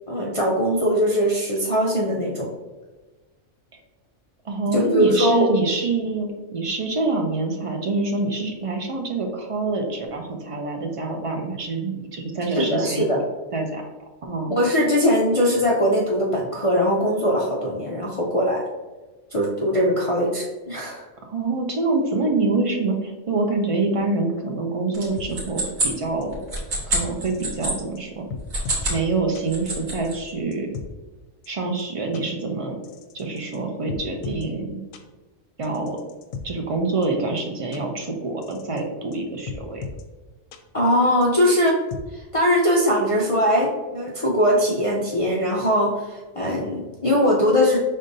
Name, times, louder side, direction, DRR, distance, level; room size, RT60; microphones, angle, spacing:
voice 1, 0.1-2.5 4.6-5.5 12.5-13.2 14.5-18.6 19.3-21.0 40.7-41.8 42.1-47.8, equal, 45° left, -4 dB, 0.4 m, -21 dB
voice 2, 4.4-13.1 13.5-13.8 14.2-14.5 21.2-26.4 26.9-28.3 28.9-30.7 31.5-32.8 33.1-34.8 35.6-36.0 36.4-39.9, right 3 dB, 55° right, 2 dB, 0.3 m, -26 dB
sound 1, 24.9-27.8 28.4-29.0 29.3-30.2, right 2 dB, 85° right, 1.7 m, -27 dB
sound 2, 25.2-25.3 25.9-26.0 26.2-26.3 26.6-26.7 27.3-27.7 28.0-28.1 28.3-28.9 29.3-29.4 30.0-30.9 31.4-31.5 31.8-31.9 32.1-32.2 32.8-33.6 33.9-34.5 34.9-35.0 35.6-36.4 37.0-37.1 37.4-37.5 37.7-37.8 38.4-38.8 39.1-39.2 39.5-40.0 40.5-40.6 41.2-42.0, left 5 dB, 85° left, 1.0 m, -36 dB
5.2 x 3.6 x 2.6 m, 1.2 s
omnidirectional pair, 1.3 m